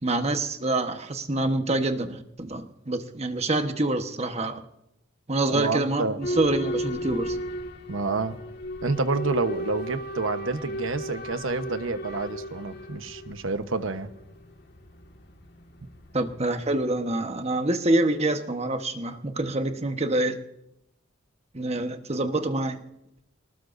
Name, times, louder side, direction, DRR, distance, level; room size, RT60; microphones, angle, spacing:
voice 1, 0.0-4.6 5.3-7.4 16.1-20.4 21.5-22.8, right 2 dB, 30° right, 7 dB, 1.2 m, -26 dB
voice 2, 5.5-6.2 7.9-8.4 8.8-14.1, right 3 dB, 80° right, 10 dB, 1.1 m, -28 dB
Boat Water vehicle / Alarm, 6.2-16.9, equal, 55° left, 1.8 m, -35 dB
23.0 x 20.0 x 2.6 m, 0.82 s
head